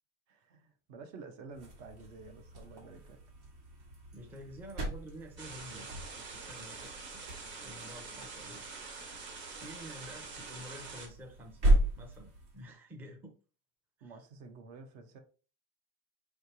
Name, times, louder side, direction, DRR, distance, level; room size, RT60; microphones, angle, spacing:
voice 1, 0.3-3.2 14.0-15.2, right 4 dB, 65° right, 1.0 m, -50 dB
sound 1, 1.5-12.7, right 1 dB, 90° right, 2.1 m, -36 dB
voice 2, 4.1-7.2 7.6-8.6 9.3-11.7 12.0-13.3 14.0-14.2, equal, 5° right, 0.4 m, -50 dB
sound 2, 5.4-11.1, right 4 dB, 35° right, 0.9 m, -45 dB
4.8 x 3.3 x 2.8 m
cardioid pair, 150°, 35 cm